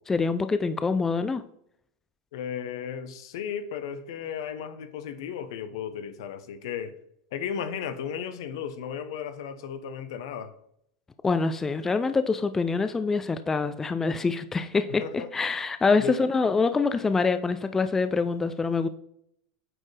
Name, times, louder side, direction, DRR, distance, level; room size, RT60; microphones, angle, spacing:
voice 1, 0.1-1.4 11.2-18.9, left 4 dB, 15° left, 11 dB, 0.4 m, -25 dB
voice 2, 2.3-6.9 7.3-10.5 14.9-15.3 16.0-16.2, left 8 dB, 75° left, 11 dB, 0.8 m, -35 dB
8.8 x 4.3 x 3.3 m, 0.73 s
hypercardioid pair, 110°, 2 cm